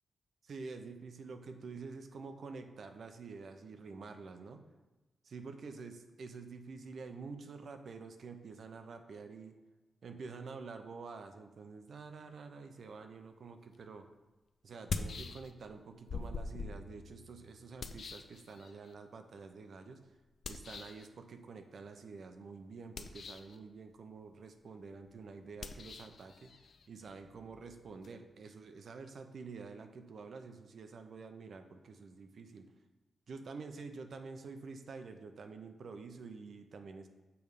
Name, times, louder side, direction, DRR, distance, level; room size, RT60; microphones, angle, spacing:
voice 1, 0.4-4.6 5.2-9.6 10.0-14.0 14.6-20.0 20.5-26.5 26.9-32.7 33.3-37.1, right 4 dB, 65° right, 7 dB, 0.6 m, -48 dB
sound 1, 13.7-13.8 14.7-15.8 16.1-18.9 20.4-21.1 22.8-23.6 25.6-28.1, left 4 dB, 65° left, 0.4 m, -44 dB
6.9 x 3.2 x 5.2 m, 1.1 s
wide cardioid pair, 110°, 0 cm